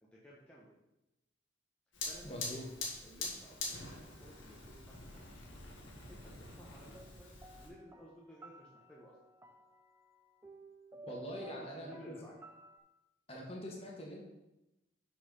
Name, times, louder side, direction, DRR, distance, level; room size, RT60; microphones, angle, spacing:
voice 1, 0.2-0.7 2.1-5.4 6.1-7.3 7.6-9.1 11.4-12.3, equal, 5° left, -6 dB, 1.0 m, -56 dB
Fire, 1.9-7.7, left 3 dB, 85° left, 1.8 m, -44 dB
voice 2, 2.2-2.6 11.0-12.1 13.3-14.2, equal, 30° left, -1 dB, 1.5 m, -44 dB
sound 1, 6.9-12.8, right 2 dB, 15° right, 0.4 m, -55 dB
6.1 x 5.9 x 5.3 m, 0.95 s
head